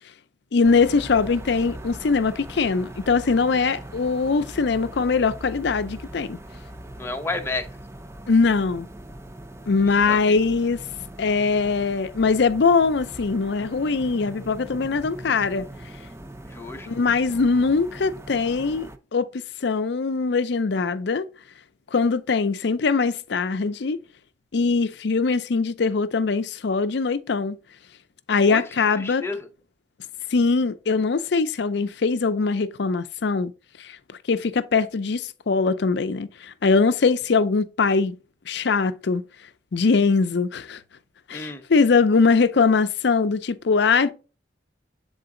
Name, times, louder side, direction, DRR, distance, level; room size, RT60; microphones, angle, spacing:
voice 1, 0.5-6.4 8.3-8.9 9.7-10.8 11.2-15.7 16.9-19.3 19.6-21.3 21.9-24.0 24.5-27.6 28.3-29.2 30.3-33.5 33.8-34.0 34.3-38.2 38.5-39.2 39.7-40.8 41.3-44.1, left 4 dB, 65° left, 0.5 m, -22 dB
sound 1, 0.6-19.0, right 1 dB, 15° right, 0.5 m, -41 dB
voice 2, 7.0-7.7 9.9-10.4 16.5-16.9 28.5-28.6 29.0-29.5 41.3-41.6, left 2 dB, 15° left, 0.8 m, -31 dB
7.9 x 3.8 x 3.8 m
head